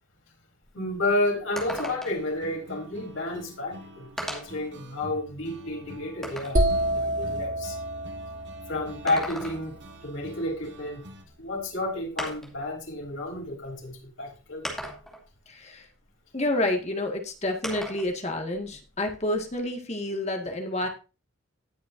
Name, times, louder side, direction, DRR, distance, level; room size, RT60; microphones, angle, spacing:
sound 1, 0.6-0.7 1.0-1.1 1.6-2.3 3.4-3.5 4.2-4.6 5.2-6.6 8.9-9.8 11.3-11.4 12.2-12.6 13.6-13.7 14.6-15.3 17.6-18.1 18.5-19.6, equal, ahead, 2.5 m, -37 dB
voice 1, 0.7-6.6 6.9-7.8 8.7-9.8 10.0-11.0 11.4-14.7, left 2 dB, 80° left, 0 dB, 3.9 m, -31 dB
sound 2, 1.6-11.2, right 1 dB, 60° right, 1.7 m, -46 dB
sound 3, 6.6-10.3, right 1 dB, 40° right, 1.3 m, -29 dB
voice 2, 15.5-15.9 16.3-20.9, left 1 dB, 35° left, 3 dB, 2.0 m, -29 dB
19.0 x 6.8 x 2.7 m, 0.31 s
head